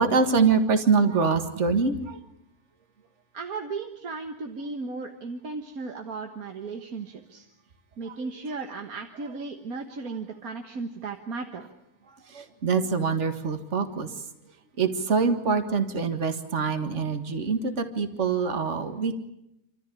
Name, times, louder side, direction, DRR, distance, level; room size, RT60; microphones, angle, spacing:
voice 1, 0.0-2.2 12.3-14.1 14.8-19.1, right 5 dB, 50° right, 8 dB, 2.0 m, -24 dB
voice 2, 3.3-7.5 8.0-11.7, right 4 dB, 70° right, 5 dB, 1.9 m, -35 dB
28.5 x 14.0 x 10.0 m, 0.84 s
omnidirectional pair, 1.6 m